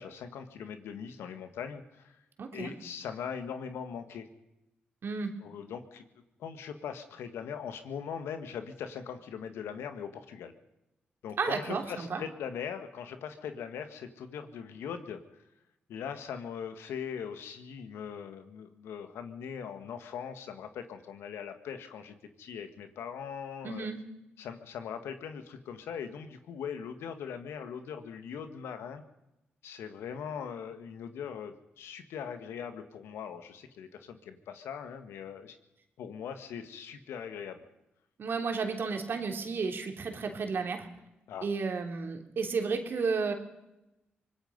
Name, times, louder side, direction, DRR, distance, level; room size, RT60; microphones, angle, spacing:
voice 1, 0.0-2.2 2.5-4.3 5.4-6.1 6.4-10.5 11.2-15.4 15.9-23.9 24.4-29.0 29.6-35.6 36.0-37.6 41.3-41.5, left 7 dB, 90° left, 8 dB, 1.8 m, -40 dB
voice 2, 2.4-2.7 5.0-5.5 11.4-12.2 23.6-24.0 38.2-40.9 41.4-43.3, right 4 dB, 65° right, 4 dB, 3.3 m, -32 dB
24.0 x 20.5 x 5.4 m, 0.93 s
cardioid pair, 60°, 4 cm